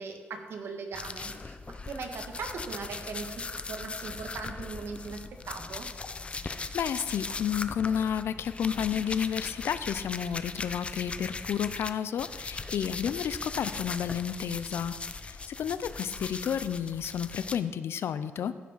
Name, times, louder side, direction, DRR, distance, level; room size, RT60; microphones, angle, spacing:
voice 1, 0.0-5.9, right 4 dB, 70° right, 4 dB, 1.6 m, -39 dB
sound 1, 0.9-11.9 12.2-17.6, left 3 dB, 25° left, 0.6 m, -39 dB
voice 2, 6.4-14.9 15.2-18.5, left 8 dB, 70° left, 13 dB, 0.6 m, -31 dB
15.0 x 6.0 x 5.7 m, 1.4 s
cardioid pair, 120°, 4 cm